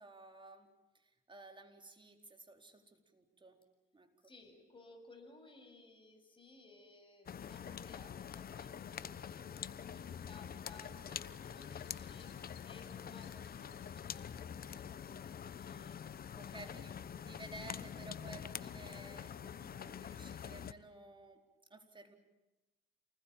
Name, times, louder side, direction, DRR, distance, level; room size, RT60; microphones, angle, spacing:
voice 1, 0.0-3.6 3.9-4.1 16.3-21.4 21.7-22.1, right 2 dB, 25° right, 5 dB, 4.2 m, -54 dB
voice 2, 4.2-16.0 16.4-16.9, left 2 dB, 25° left, 3 dB, 8.0 m, -59 dB
sound 1, 7.3-20.7, left 8 dB, 50° left, 1.0 m, -46 dB
sound 2, 10.7-15.2, left 8 dB, 65° left, 5.2 m, -65 dB
28.5 x 20.5 x 9.0 m, 1.0 s
cardioid pair, 90°, 20 cm